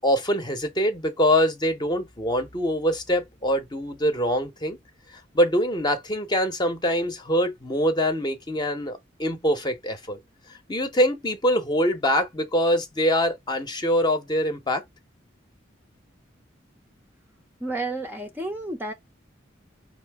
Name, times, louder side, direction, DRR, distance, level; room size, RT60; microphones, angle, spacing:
voice 1, 0.0-4.8 5.1-10.2 10.7-14.8, equal, 25° left, 0.8 m, -24 dB
voice 2, 17.6-18.9, right 2 dB, 10° right, 0.6 m, -31 dB
5.4 x 2.8 x 3.4 m
head